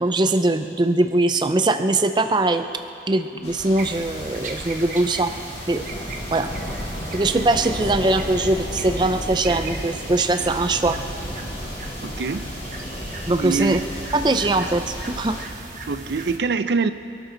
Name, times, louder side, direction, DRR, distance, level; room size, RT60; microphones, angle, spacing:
voice 1, 0.0-2.7 3.1-5.3 5.7-5.9 6.3-6.5 7.1-11.0 13.3-13.8 14.1-15.4, right 2 dB, 25° right, 8 dB, 0.5 m, -21 dB
sound 1, 3.4-15.4, equal, 40° left, 3.3 m, -33 dB
sound 2, 3.8-16.4, right 3 dB, 45° right, 1.2 m, -37 dB
voice 2, 12.0-12.5 13.4-13.8 15.9-16.9, right 4 dB, 75° right, 12 dB, 0.5 m, -24 dB
26.5 x 13.0 x 3.9 m, 2.7 s
head